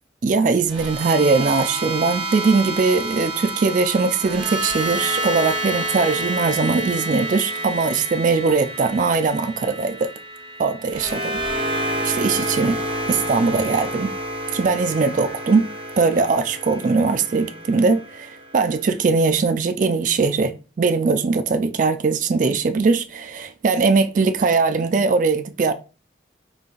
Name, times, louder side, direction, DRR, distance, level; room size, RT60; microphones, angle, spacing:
voice 1, 0.2-10.1 10.6-11.4 12.0-12.8 13.1-14.1 14.5-15.7 16.0-25.7, right 4 dB, 45° right, 0.3 m, -20 dB
sound 1, 0.7-18.8, right 1 dB, 30° right, 0.8 m, -29 dB
3.8 x 3.8 x 2.5 m
head